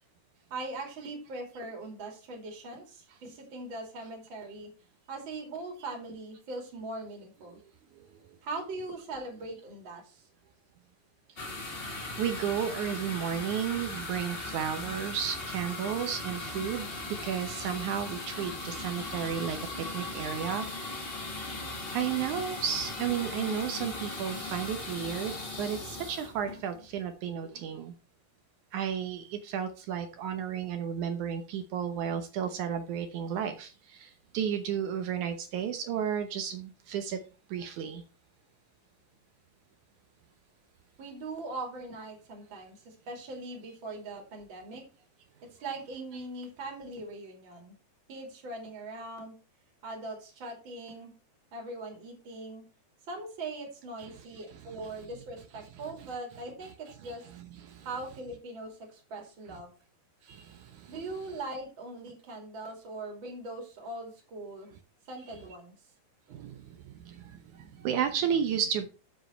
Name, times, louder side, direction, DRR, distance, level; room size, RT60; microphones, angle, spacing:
voice 1, 0.5-4.7 5.1-7.6 8.4-10.2 41.0-44.9 45.6-47.8 48.1-49.3 49.8-51.2 51.5-52.6 53.1-57.2 57.8-59.7 60.9-64.7 65.1-65.7, right 2 dB, 35° right, 2 dB, 3.0 m, -41 dB
sound 1, 11.4-27.1, left 2 dB, 55° left, 0.6 m, -38 dB
voice 2, 12.2-16.9 17.2-20.7 21.9-27.9 28.7-37.2 37.5-38.0 54.0-54.1 54.5-54.6 57.4-57.9 60.3-60.9 66.3-68.9, right 8 dB, 70° right, 8 dB, 1.9 m, -33 dB
7.6 x 7.2 x 4.4 m, 0.33 s
omnidirectional pair, 4.5 m